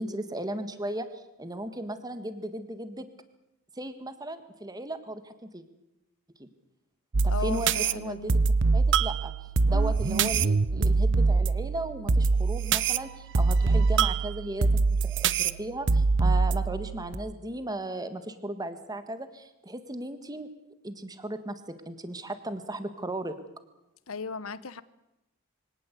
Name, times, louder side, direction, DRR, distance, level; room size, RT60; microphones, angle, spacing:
voice 1, 0.0-3.1 3.8-5.6 6.4-6.5 7.2-8.3 8.7-9.3 9.7-20.5 20.8-23.4, right 1 dB, 20° right, 10 dB, 1.7 m, -36 dB
sound 1, 7.1-17.2, right 4 dB, 55° right, 0.8 m, -24 dB
voice 2, 7.3-8.4 24.1-24.8, left 5 dB, 70° left, 16 dB, 1.0 m, -36 dB
23.5 x 18.0 x 8.3 m, 0.90 s
head